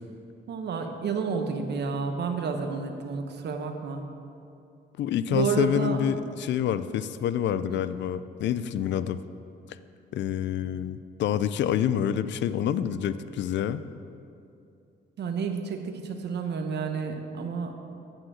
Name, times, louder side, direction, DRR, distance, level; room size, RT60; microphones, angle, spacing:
voice 1, 0.5-4.0 5.3-6.0 7.7-7.9 15.2-17.7, right 5 dB, 60° right, 5 dB, 1.0 m, -30 dB
voice 2, 5.0-9.2 10.1-13.8, left 9 dB, 65° left, 13 dB, 0.4 m, -27 dB
8.8 x 4.9 x 7.3 m, 2.6 s
cardioid pair, 90°, 20 cm